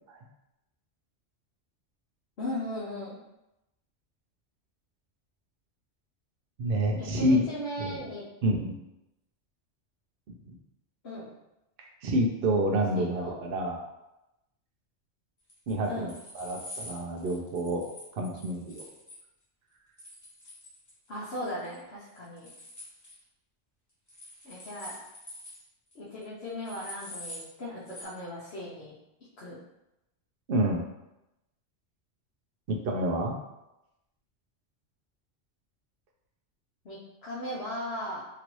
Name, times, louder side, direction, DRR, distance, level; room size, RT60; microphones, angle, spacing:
voice 1, 2.4-3.2 7.0-8.2 11.0-11.3 12.9-13.4 15.9-16.1 21.1-22.5 24.4-25.0 25.9-28.9 29.4-29.6 36.8-38.2, left 1 dB, 60° left, -8 dB, 1.0 m, -37 dB
voice 2, 6.6-7.4 7.8-8.0 8.4-8.7 10.4-10.6 12.0-13.8 15.7-17.8 18.1-18.9 30.5-30.8 32.7-33.3, right 1 dB, 60° right, 1 dB, 0.7 m, -28 dB
sound 1, 15.5-19.2 20.0-21.1 21.4-21.8 22.1-23.2 24.1-25.6 25.9-26.0 26.2-26.3 26.6-27.5 27.9-28.0, left 1 dB, 15° left, 0.9 m, -46 dB
2.9 x 2.6 x 3.0 m, 0.92 s
omnidirectional pair, 1.2 m